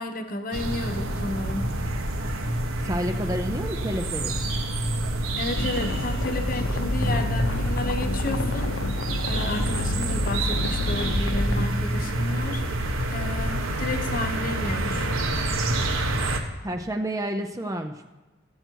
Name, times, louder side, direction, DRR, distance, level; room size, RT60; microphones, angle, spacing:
voice 1, 0.0-1.7 5.4-15.1, left 2 dB, 45° left, 7 dB, 0.9 m, -32 dB
sound 1, 0.5-16.4, right 1 dB, 90° right, 1.2 m, -28 dB
voice 2, 2.8-4.3 16.6-18.1, right 1 dB, 15° right, 5 dB, 0.5 m, -30 dB
sound 2, 5.5-11.7, left 1 dB, 70° left, 0.7 m, -29 dB
15.0 x 7.9 x 4.5 m, 1.2 s
head